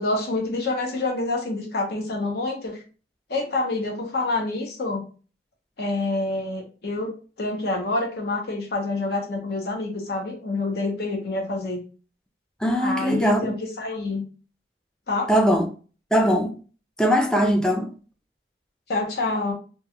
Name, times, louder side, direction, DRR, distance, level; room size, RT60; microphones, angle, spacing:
voice 1, 0.0-2.8 3.3-5.0 5.8-7.1 7.4-11.8 12.8-14.2 15.1-15.3 18.9-19.5, left 2 dB, 60° left, 0.7 m, -27 dB
voice 2, 12.6-13.6 15.3-15.7 16.1-16.5 17.0-17.9, equal, 5° left, 0.3 m, -20 dB
2.3 x 2.2 x 2.8 m
head